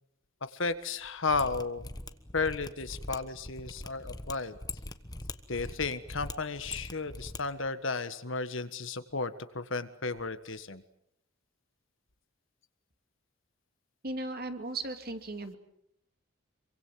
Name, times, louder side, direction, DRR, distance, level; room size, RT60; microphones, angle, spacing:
voice 1, 0.5-1.9 2.3-4.6 5.5-10.8, left 4 dB, 60° left, 11 dB, 1.6 m, -33 dB
Mechanisms, 1.3-7.4 7.6-7.7, left 2 dB, 20° left, 1.2 m, -42 dB
voice 2, 14.0-15.6, right 2 dB, 45° right, 7 dB, 2.6 m, -36 dB
26.5 x 24.0 x 7.6 m, 0.76 s
head